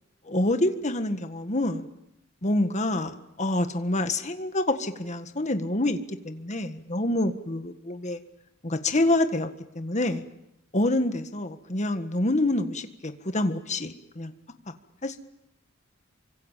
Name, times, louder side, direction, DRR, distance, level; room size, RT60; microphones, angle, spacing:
voice 1, 0.3-1.9 2.4-8.2 8.6-9.5 9.7-10.2 10.7-14.3 14.7-14.8 15.0-15.2, left 1 dB, 35° left, 8 dB, 1.6 m, -27 dB
28.5 x 25.0 x 7.5 m, 0.85 s
head